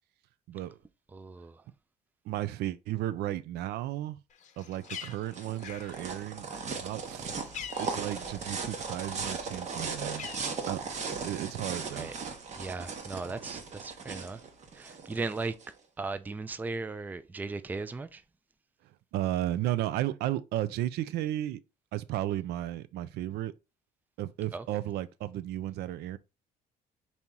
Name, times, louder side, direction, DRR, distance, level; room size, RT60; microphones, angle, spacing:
voice 1, 0.5-0.8 2.2-4.2 4.6-10.3 10.7-11.0 11.2-12.1 18.8-21.6 21.9-23.5 24.2-26.2, right 13 dB, 75° right, 0.4 m, -34 dB
voice 2, 1.1-1.6 11.9-12.1 12.6-14.4 14.7-15.6 16.0-18.2 24.5-24.7, right 3 dB, 10° right, 0.3 m, -37 dB
Bird, 4.3-8.9 9.2-11.1, left 8 dB, 45° left, 0.7 m, -46 dB
sound 1, 4.8-15.7, right 5 dB, 45° right, 0.9 m, -38 dB
4.1 x 2.9 x 3.7 m
cardioid pair, 110°, 17 cm